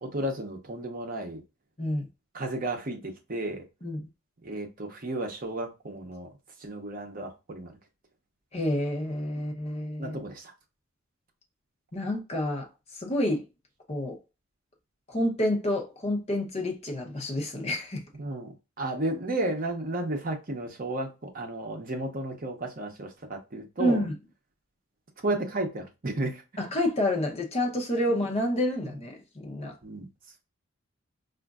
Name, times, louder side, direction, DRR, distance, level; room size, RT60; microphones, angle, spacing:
voice 1, 0.0-1.4 2.3-3.6 4.4-6.3 6.6-7.7 10.0-10.5 18.2-24.0 25.2-26.4 29.8-30.1, right 1 dB, 40° right, 0.7 m, -33 dB
voice 2, 8.5-10.2 11.9-12.7 13.0-13.4 13.9-14.2 15.1-18.0 23.8-24.1 26.6-29.7, left 1 dB, 30° left, 0.8 m, -28 dB
4.9 x 2.5 x 2.3 m
head